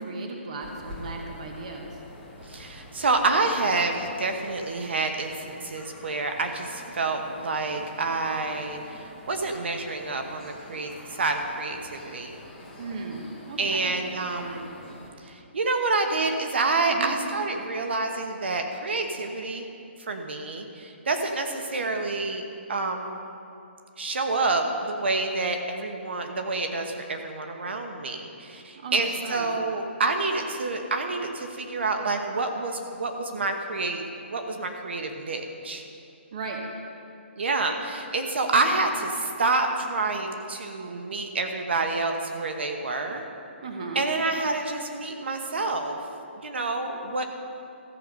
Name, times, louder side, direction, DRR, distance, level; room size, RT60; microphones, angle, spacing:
voice 1, 0.0-2.0 12.8-13.9 16.9-17.2 28.7-29.5 36.3-36.6 43.6-44.1, right 3 dB, 35° right, 2 dB, 1.1 m, -36 dB
sound 1, 0.6-15.1, left 1 dB, ahead, 1.3 m, -46 dB
voice 2, 2.4-12.4 13.6-14.7 15.2-19.7 20.0-22.4 22.7-23.2 24.0-35.8 37.4-43.3 43.9-46.0 46.4-47.2, right 3 dB, 60° right, 5 dB, 1.1 m, -28 dB
14.0 x 7.8 x 5.3 m, 2.6 s
hypercardioid pair, 180°, 7 cm